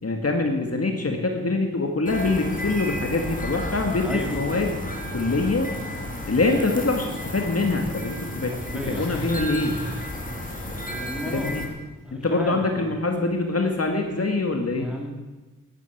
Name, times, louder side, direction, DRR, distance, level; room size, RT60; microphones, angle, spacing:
voice 1, 0.0-4.8 5.1-5.7 6.2-9.8 11.3-11.7 12.1-14.9, left 3 dB, 50° left, 3 dB, 2.2 m, -24 dB
sound 1, 2.0-11.7, left 1 dB, 25° left, 3.3 m, -33 dB
voice 2, 4.0-4.4 8.5-9.1 10.7-11.6 12.0-12.9 14.7-15.1, left 1 dB, 5° right, 0 dB, 4.0 m, -34 dB
Growling, 8.7-11.0 11.3-11.7 12.0-12.1, equal, 75° left, 4.3 m, -38 dB
13.0 x 11.5 x 8.6 m, 1.2 s
cardioid pair, 60°, 32 cm